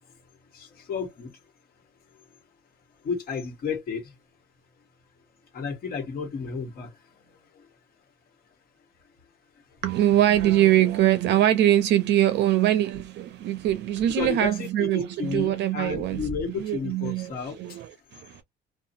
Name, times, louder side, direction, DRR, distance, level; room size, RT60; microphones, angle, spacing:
voice 1, 0.5-1.3 3.0-4.1 5.5-7.7 14.2-17.8, left 5 dB, 50° left, 1.4 m, -32 dB
voice 2, 9.8-16.3 16.6-18.4, right 12 dB, 60° right, 0.5 m, -23 dB
2.7 x 2.3 x 2.6 m
cardioid pair, 155°, 20 cm